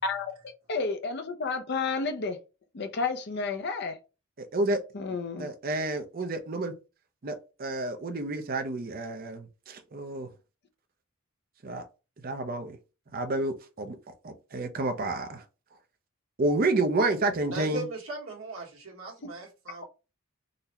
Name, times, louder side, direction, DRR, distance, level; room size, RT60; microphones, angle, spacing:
voice 1, 0.0-2.4 2.7-4.0 4.9-5.5, left 4 dB, 50° left, 0.5 m, -31 dB
voice 2, 4.4-4.8 5.4-6.8 7.2-10.3 11.6-11.9 12.2-12.8 13.1-14.0 14.2-15.4 16.4-17.8, right 2 dB, 45° right, 0.5 m, -29 dB
voice 3, 17.4-19.9, right 2 dB, 85° right, 1.3 m, -38 dB
3.9 x 2.1 x 2.8 m
head